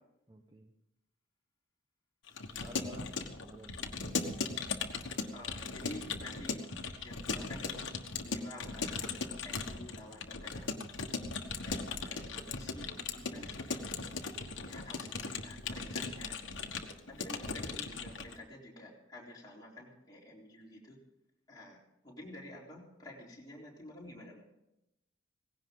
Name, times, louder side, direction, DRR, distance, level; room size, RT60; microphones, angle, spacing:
voice 1, 0.3-0.7 2.5-4.4, equal, 20° right, 3 dB, 1.0 m, -51 dB
Keyboard (musical) / Computer keyboard, 2.3-18.4, left 4 dB, 60° left, 1.4 m, -38 dB
voice 2, 5.3-6.6 7.0-7.7 8.2-9.1 9.4-10.7 11.6-13.9 14.6-16.4 17.1-21.0 21.5-21.8 22.0-24.4, left 1 dB, 20° left, -4 dB, 4.0 m, -50 dB
18.0 x 16.5 x 3.9 m, 0.87 s
head